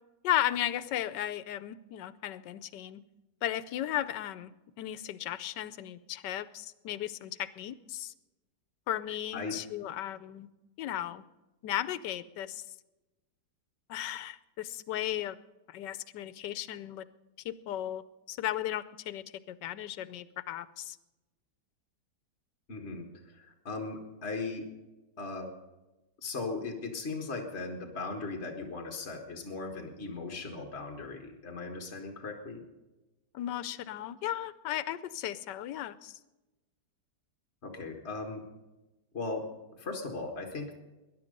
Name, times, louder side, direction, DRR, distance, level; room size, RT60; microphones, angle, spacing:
voice 1, 0.2-3.0 3.4-4.5 4.8-8.1 8.9-10.5 10.8-11.2 11.6-12.6 13.9-15.4 15.7-17.0 17.4-18.0 18.3-21.0 33.3-36.2, left 12 dB, 85° left, 15 dB, 1.3 m, -35 dB
voice 2, 22.7-24.7 25.2-25.5 26.2-32.6 37.6-38.4 39.1-40.7, left 3 dB, 40° left, 1 dB, 1.9 m, -38 dB
20.5 x 11.0 x 5.3 m, 1.0 s
omnidirectional pair, 1.8 m